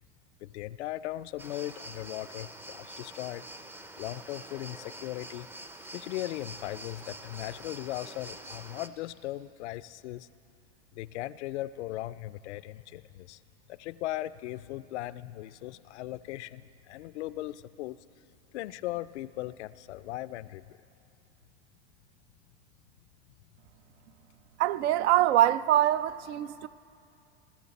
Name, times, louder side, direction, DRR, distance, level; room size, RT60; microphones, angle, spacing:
voice 1, 0.4-3.5 4.0-5.5 5.9-10.3 10.9-13.4 13.7-18.0 18.5-20.8, left 15 dB, 80° left, 0.5 m, -38 dB
sound 1, 1.4-8.9, right 1 dB, 5° right, 0.4 m, -45 dB
voice 2, 24.6-26.7, right 13 dB, 70° right, 0.5 m, -24 dB
21.0 x 13.0 x 4.1 m
hypercardioid pair, 100°, 34 cm